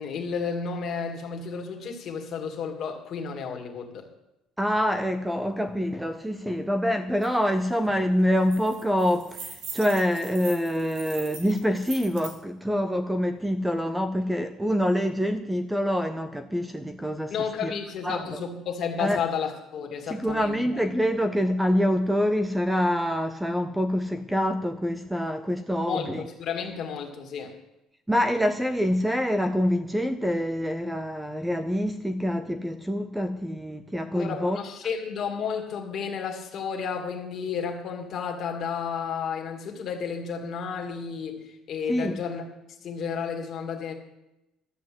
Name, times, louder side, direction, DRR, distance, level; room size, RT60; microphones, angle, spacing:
voice 1, 0.0-4.1 17.3-20.6 25.9-27.5 34.1-42.5 42.8-43.9, left 6 dB, 40° left, 2.1 m, -32 dB
voice 2, 4.6-17.3 17.6-17.7 18.0-18.4 19.0-19.2 20.1-26.2 28.1-34.6 41.9-42.2, equal, 5° right, 0.5 m, -26 dB
sound 1, 7.2-7.3 7.6-7.9 8.2-12.4, right 5 dB, 80° right, 2.3 m, -41 dB
13.0 x 7.3 x 7.7 m
cardioid pair, 165°, 0 cm